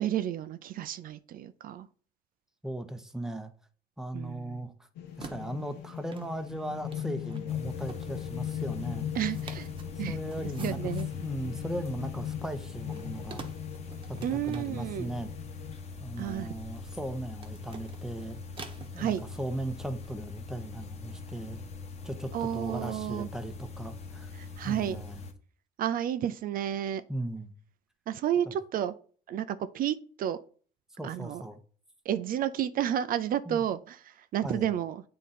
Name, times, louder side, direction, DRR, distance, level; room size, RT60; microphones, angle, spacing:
voice 1, 0.0-1.9 4.1-4.7 9.1-9.7 10.0-10.2 10.6-11.1 14.2-15.1 16.2-16.5 19.0-19.2 22.3-23.3 24.3-25.0 25.8-27.0 28.1-28.9 29.3-30.4 31.0-31.4 32.1-35.0, right 10 dB, 55° right, 0.5 m, -31 dB
voice 2, 2.6-3.5 4.0-4.7 5.2-9.1 10.0-10.9 11.2-13.4 14.1-15.3 16.0-18.4 18.9-21.6 22.0-24.3 24.6-25.2 27.1-27.5 28.5-28.6 31.0-31.6 33.5-33.6 34.4-34.7, right 1 dB, 5° right, 0.8 m, -37 dB
sound 1, 5.0-15.7, left 10 dB, 85° left, 0.9 m, -38 dB
sound 2, 5.1-20.1, right 4 dB, 30° right, 1.1 m, -51 dB
sound 3, 7.5-25.3, left 4 dB, 40° left, 1.1 m, -43 dB
8.3 x 3.8 x 4.2 m
cardioid pair, 110°, 17 cm